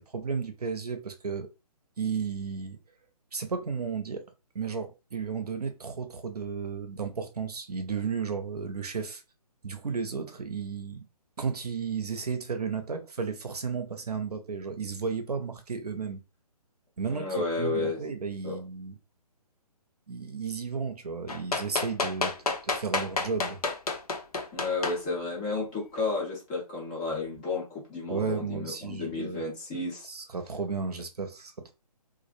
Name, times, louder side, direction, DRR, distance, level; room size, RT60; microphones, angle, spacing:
voice 1, 0.0-1.5 2.0-2.8 3.3-9.2 9.6-11.1 11.4-16.2 17.0-19.0 20.1-22.3 22.6-23.6 28.1-29.4 30.0-31.7, right 5 dB, 75° right, 0.6 m, -33 dB
voice 2, 17.1-18.0 18.4-18.6 24.5-30.1, left 3 dB, 10° left, 0.4 m, -32 dB
sound 1, 21.3-25.0 25.9-26.0, left 3 dB, 70° left, 0.6 m, -29 dB
2.4 x 2.0 x 2.5 m
figure-of-eight pair, 140°, 20 cm